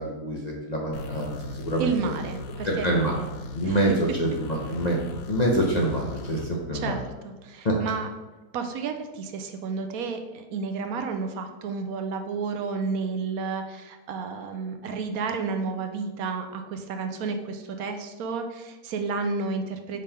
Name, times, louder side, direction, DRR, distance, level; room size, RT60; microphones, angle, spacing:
voice 1, 0.0-1.9 2.6-3.2 3.5-5.0 5.3-7.0 7.6-7.8, right 1 dB, 40° left, -3 dB, 0.7 m, -26 dB
sound 1, 0.9-6.5, left 2 dB, 70° left, 1.0 m, -38 dB
voice 2, 1.8-3.3 3.7-3.8 6.7-8.1 8.5-20.0, right 4 dB, 70° right, 6 dB, 1.0 m, -31 dB
5.1 x 3.7 x 5.5 m, 1.1 s
omnidirectional pair, 1.6 m